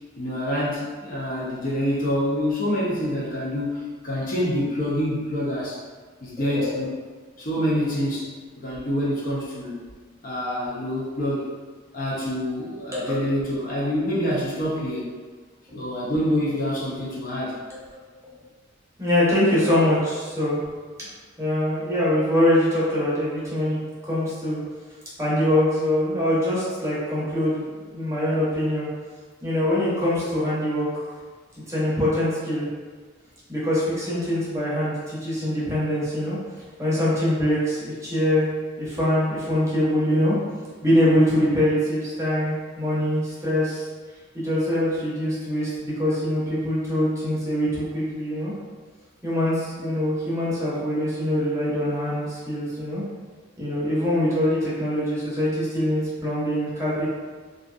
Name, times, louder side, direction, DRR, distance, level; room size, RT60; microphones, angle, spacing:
voice 1, 0.2-5.8 6.2-6.9 7.4-9.8 10.2-11.5 11.9-15.1 15.7-17.6, equal, 45° left, -7 dB, 0.6 m, -26 dB
voice 2, 19.0-20.6 21.4-24.6 25.2-28.9 29.4-31.1 31.7-32.7 33.5-36.4 36.8-38.5 38.8-40.4 40.8-43.9 44.3-48.5 49.2-53.0 53.6-57.1, left 1 dB, 15° right, -9 dB, 0.8 m, -23 dB
2.5 x 2.3 x 2.3 m, 1.5 s
head